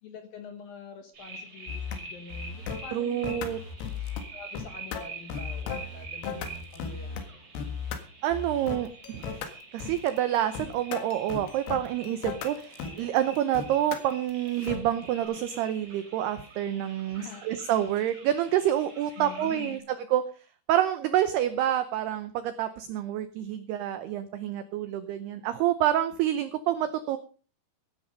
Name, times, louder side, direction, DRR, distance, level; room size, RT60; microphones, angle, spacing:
voice 1, 0.0-3.5 4.3-7.4 17.1-17.4 19.2-19.8, left 6 dB, 65° left, 7 dB, 2.4 m, -45 dB
sound 1, 1.1-19.8, right 3 dB, 30° right, 3.6 m, -46 dB
sound 2, 1.7-2.0 2.3-2.9 3.2-4.2 4.5-7.2 7.5-8.0 8.3-14.9, left 6 dB, 85° left, 4.4 m, -36 dB
voice 2, 2.9-3.6 8.2-9.4 9.7-20.2 20.7-27.2, right 11 dB, 90° right, 11 dB, 2.3 m, -28 dB
16.0 x 10.0 x 5.2 m, 0.38 s
omnidirectional pair, 5.8 m